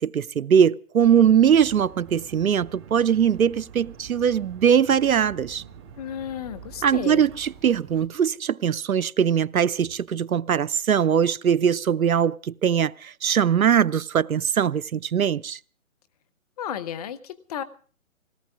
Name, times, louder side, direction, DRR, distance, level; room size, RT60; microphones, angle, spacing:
voice 1, 0.0-5.6 6.8-15.6, right 8 dB, 85° right, 0.7 m, -21 dB
sound 1, 1.0-8.1, right 7 dB, 20° right, 0.9 m, -45 dB
voice 2, 6.0-7.3 16.6-17.6, left 10 dB, 30° left, 1.0 m, -33 dB
20.5 x 18.0 x 3.5 m
figure-of-eight pair, 145°, 41 cm